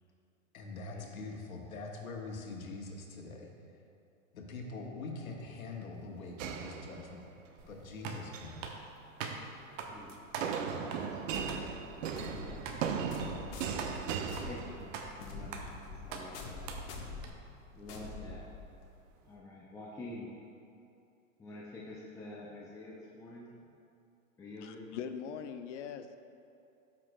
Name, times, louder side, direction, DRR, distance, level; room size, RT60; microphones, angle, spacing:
voice 1, 0.5-3.5 4.3-7.2 7.7-8.6, left 3 dB, 85° left, 1 dB, 1.4 m, -43 dB
sound 1, 6.4-7.5 8.1-8.6 10.4-15.2, right 6 dB, 70° right, 0.7 m, -37 dB
sound 2, 7.6-17.3, right 5 dB, 40° right, 0.9 m, -45 dB
voice 2, 11.0-11.6 12.1-13.1 14.4-16.7 17.7-18.5 19.2-20.3 21.4-23.5 24.4-24.9 25.2-25.5, left 2 dB, 10° left, -4 dB, 0.4 m, -48 dB
sound 3, 11.3-19.0, left 3 dB, 40° left, 1.2 m, -46 dB
voice 3, 24.6-26.2, left 7 dB, 60° left, 9 dB, 0.7 m, -41 dB
13.0 x 5.9 x 2.2 m, 2.7 s
hypercardioid pair, 120°, 41 cm